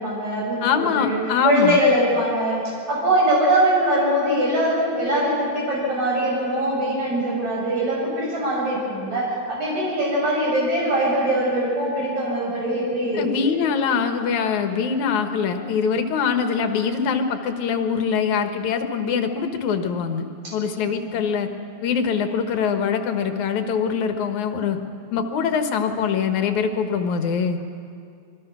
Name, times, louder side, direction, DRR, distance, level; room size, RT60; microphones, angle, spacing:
voice 1, 0.0-1.2 1.4-13.3 20.4-20.8 21.1-21.2, right 1 dB, 70° right, -4 dB, 8.0 m, -22 dB
voice 2, 0.6-1.8 13.1-21.5 21.8-24.8 25.1-27.6, left 6 dB, 75° left, 7 dB, 2.7 m, -23 dB
26.5 x 21.5 x 6.1 m, 2.3 s
omnidirectional pair, 3.4 m